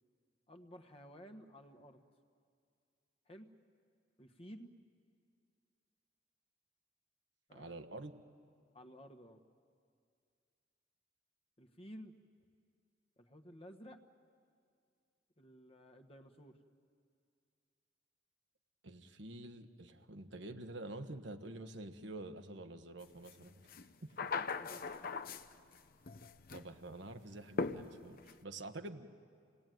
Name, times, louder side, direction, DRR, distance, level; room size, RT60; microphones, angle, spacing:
voice 1, 0.5-2.0 3.3-3.5 4.2-4.7 7.5-7.8 8.7-9.4 11.6-12.1 13.2-14.0 15.4-16.6 24.6-25.0, equal, 30° left, 5 dB, 1.3 m, -54 dB
voice 2, 7.5-8.1 18.8-23.5 24.0-24.1 26.5-29.1, right 2 dB, 70° right, 6 dB, 1.3 m, -48 dB
sound 1, 23.3-23.4 23.7-25.8 26.1-26.7 27.6-28.3, left 4 dB, 50° left, 0.8 m, -39 dB
28.5 x 19.0 x 9.2 m, 2.3 s
head